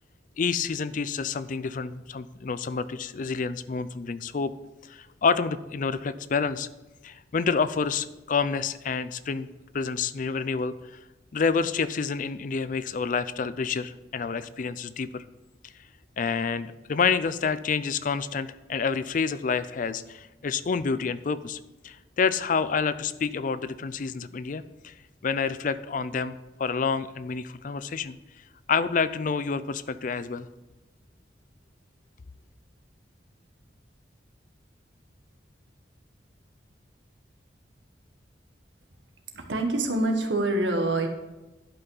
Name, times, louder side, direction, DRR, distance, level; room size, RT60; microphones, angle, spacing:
voice 1, 0.4-4.5 4.9-6.7 7.0-9.5 9.7-11.0 11.3-15.2 15.6-15.7 16.2-24.9 25.2-28.2 28.7-30.5, left 5 dB, 45° left, 15 dB, 0.4 m, -28 dB
voice 2, 39.3-41.1, right 2 dB, 80° right, 4 dB, 1.5 m, -25 dB
11.0 x 5.7 x 5.6 m, 1.1 s
head